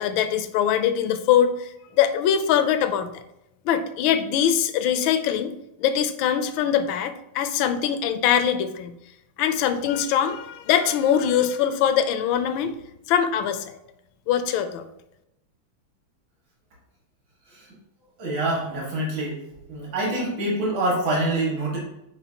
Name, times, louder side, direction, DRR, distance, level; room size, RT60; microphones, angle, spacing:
voice 1, 0.0-3.2 3.6-5.5 5.8-9.0 9.4-12.7 13.1-13.7 14.3-14.9, left 9 dB, 80° left, 10 dB, 1.3 m, -22 dB
voice 2, 18.2-19.4 19.7-21.8, right 1 dB, 70° right, -4 dB, 2.7 m, -25 dB
9.9 x 4.3 x 2.9 m, 0.87 s
omnidirectional pair, 2.2 m